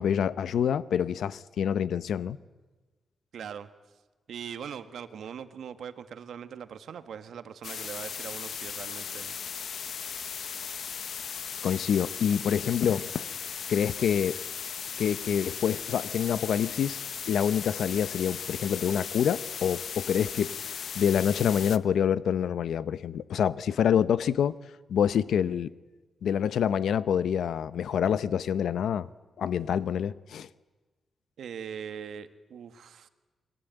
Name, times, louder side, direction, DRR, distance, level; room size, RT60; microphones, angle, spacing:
voice 1, 0.0-2.4 11.6-13.3 13.7-14.4 15.0-17.0 17.3-24.6 24.9-25.7 26.2-29.1 29.4-30.5, left 8 dB, 85° left, 0.9 m, -27 dB
voice 2, 3.3-3.7 4.3-9.4 31.4-33.1, right 7 dB, 75° right, 1.6 m, -41 dB
sound 1, 7.6-21.8, left 7 dB, 60° left, 0.9 m, -37 dB
29.0 x 22.0 x 9.1 m
wide cardioid pair, 160°, 0 cm